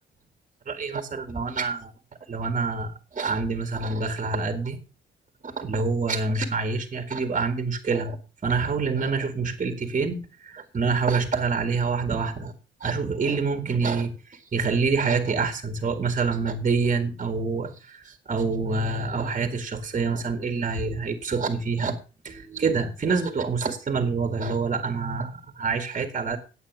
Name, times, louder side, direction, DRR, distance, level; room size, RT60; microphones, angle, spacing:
voice 1, 0.7-1.9 2.3-4.8 5.4-8.2 8.4-12.5 12.8-22.0 22.2-26.4, right 4 dB, 35° right, 7 dB, 1.8 m, -26 dB
9.9 x 8.2 x 6.0 m, 0.33 s
cardioid pair, 90°, 20 cm